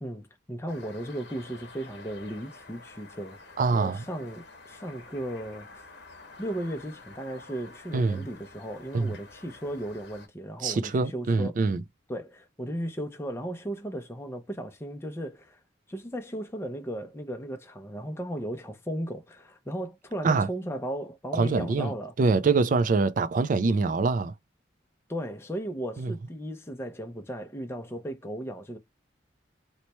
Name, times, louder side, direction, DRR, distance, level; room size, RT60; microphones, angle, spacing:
voice 1, 0.0-5.7 6.4-11.6 12.1-15.6 15.9-22.1 25.1-28.8, equal, 15° left, 0.5 m, -36 dB
sound 1, 0.7-10.3, left 3 dB, 60° left, 0.9 m, -49 dB
voice 2, 3.6-4.1 7.9-8.3 8.9-9.2 10.6-11.8 20.2-20.5 21.3-24.3 26.0-26.1, right 4 dB, 45° right, 0.3 m, -24 dB
3.1 x 2.2 x 4.1 m
head